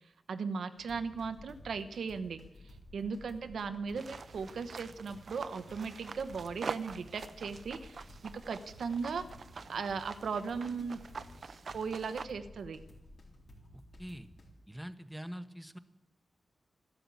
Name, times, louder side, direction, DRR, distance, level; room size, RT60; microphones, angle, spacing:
voice 1, 0.3-2.4 2.9-9.2 9.7-11.0 11.7-12.8, right 5 dB, 85° right, 10 dB, 1.0 m, -37 dB
sound 1, 0.8-14.5, left 1 dB, 70° left, 3.9 m, -54 dB
sound 2, 4.0-12.3, right 5 dB, 60° right, 0.7 m, -46 dB
voice 2, 14.7-15.8, equal, ahead, 10 dB, 1.0 m, -43 dB
12.5 x 12.5 x 8.3 m, 0.94 s
cardioid pair, 80°, 0 cm